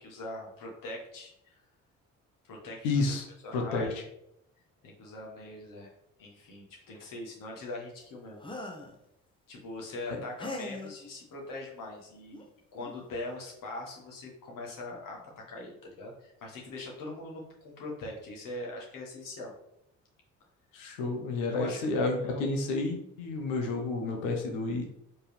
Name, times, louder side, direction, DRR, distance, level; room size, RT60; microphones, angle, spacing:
voice 1, 0.0-1.6 2.5-3.2 3.4-4.1 4.8-5.9 6.2-8.4 9.5-12.4 12.7-19.5 20.8-21.0 21.5-21.9 22.2-22.4, left 2 dB, 55° left, -1 dB, 1.5 m, -42 dB
voice 2, 2.8-3.2 3.5-3.9 10.1-10.2 20.7-24.8, left 3 dB, 75° left, 3 dB, 0.9 m, -30 dB
sound 1, 8.4-8.9 10.4-10.9 12.3-12.4 12.8-13.0, left 2 dB, 15° left, 0.9 m, -39 dB
4.4 x 3.2 x 3.3 m, 0.80 s
hypercardioid pair, 45°, 38 cm